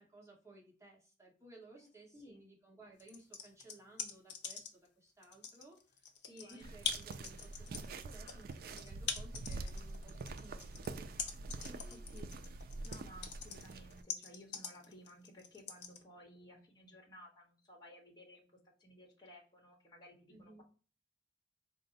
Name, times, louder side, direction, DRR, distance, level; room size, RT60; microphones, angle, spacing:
voice 1, 0.0-6.0 6.4-11.2 11.5-12.2 12.7-12.8 20.3-20.6, right 2 dB, 15° right, -3 dB, 1.2 m, -59 dB
voice 2, 1.8-2.4 6.3-6.8 11.6-12.4 12.8-18.5 18.8-20.6, equal, 25° left, -1 dB, 0.9 m, -57 dB
sound 1, 3.0-4.9 5.2-16.0, left 6 dB, 70° left, 0.6 m, -43 dB
sound 2, 6.6-14.0, right 3 dB, 55° right, 0.3 m, -46 dB
4.3 x 2.0 x 3.8 m, 0.37 s
head